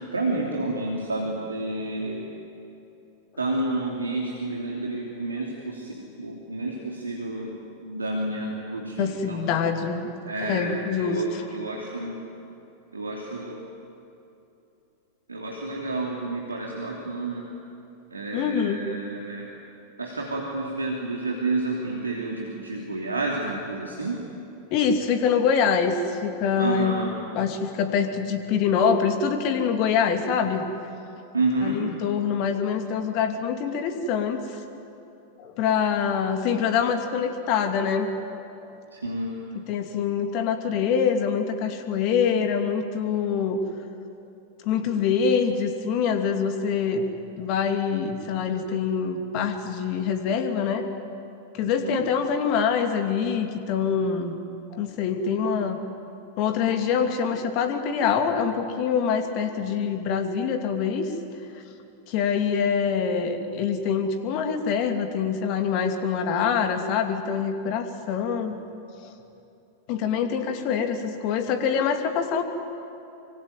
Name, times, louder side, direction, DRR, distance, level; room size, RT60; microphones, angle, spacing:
voice 1, 0.1-2.3 3.4-7.5 7.8-9.4 10.3-12.2 12.9-13.6 15.3-17.4 18.1-19.4 20.0-24.2 26.6-27.1 31.3-31.8 38.9-39.3 51.7-52.0, right 2 dB, 75° right, -1 dB, 3.0 m, -30 dB
voice 2, 8.9-10.1 10.4-11.4 18.3-18.8 24.7-27.0 27.3-30.6 31.6-34.6 35.4-38.1 39.5-43.6 44.6-47.0 47.4-50.9 51.5-54.4 54.7-55.8 56.4-61.1 62.1-68.5 69.0-69.1 69.9-72.4, left 6 dB, 40° left, 6 dB, 2.7 m, -25 dB
25.5 x 24.5 x 9.3 m, 2.8 s
figure-of-eight pair, 90°, 0 cm